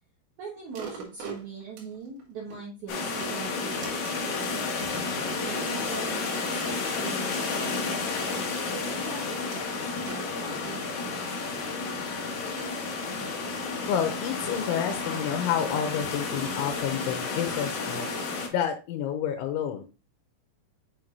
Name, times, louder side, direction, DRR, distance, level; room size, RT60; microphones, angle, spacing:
voice 1, 0.4-4.8 5.4-11.5, right 4 dB, 80° right, -2 dB, 1.7 m, -42 dB
sound 1, 0.7-2.6 3.0-4.5 5.1-6.7 7.3-11.5 12.0-12.1, right 5 dB, 60° right, 3.1 m, -45 dB
sound 2, 2.9-18.5, left 4 dB, 65° left, 1.9 m, -31 dB
voice 2, 13.9-19.8, left 9 dB, 85° left, 6 dB, 3.1 m, -29 dB
6.8 x 6.0 x 2.5 m, 0.29 s
omnidirectional pair, 5.4 m